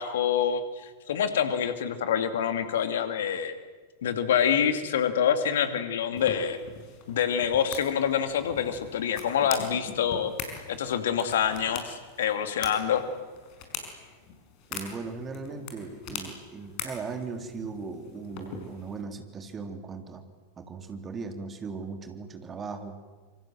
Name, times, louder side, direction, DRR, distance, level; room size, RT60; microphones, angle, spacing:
voice 1, 0.0-3.5 4.0-6.6 7.1-10.3 10.7-13.0, left 8 dB, 60° left, 9 dB, 2.5 m, -26 dB
sound 1, 6.2-19.0, left 6 dB, 45° left, 5.2 m, -42 dB
voice 2, 14.7-20.2 20.6-22.9, right 4 dB, 20° right, 6 dB, 3.3 m, -38 dB
26.5 x 24.5 x 7.7 m, 1.4 s
figure-of-eight pair, 90°, 0 cm